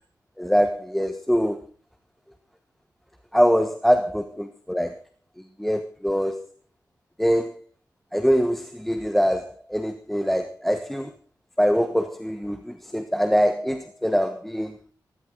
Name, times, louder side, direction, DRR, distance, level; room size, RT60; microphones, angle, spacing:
voice 1, 0.4-1.6 3.3-4.9 5.6-6.4 7.2-7.5 8.1-11.1 11.6-14.7, equal, ahead, 8 dB, 1.2 m, -23 dB
17.0 x 15.5 x 3.9 m, 0.38 s
wide cardioid pair, 130°, 7 cm